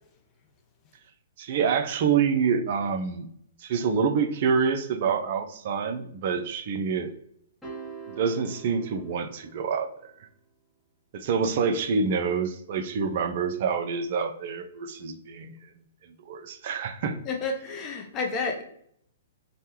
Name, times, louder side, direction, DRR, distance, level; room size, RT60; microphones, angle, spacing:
voice 1, 1.4-3.3 3.6-7.1 8.2-9.9 11.1-15.5 16.3-17.2, right 6 dB, 50° right, 6 dB, 0.4 m, -27 dB
sound 1, 7.6-10.0, right 5 dB, ahead, 0.9 m, -44 dB
voice 2, 17.2-18.6, left 4 dB, 25° left, 2 dB, 0.5 m, -30 dB
3.2 x 2.2 x 2.8 m, 0.68 s
figure-of-eight pair, 120°, 0 cm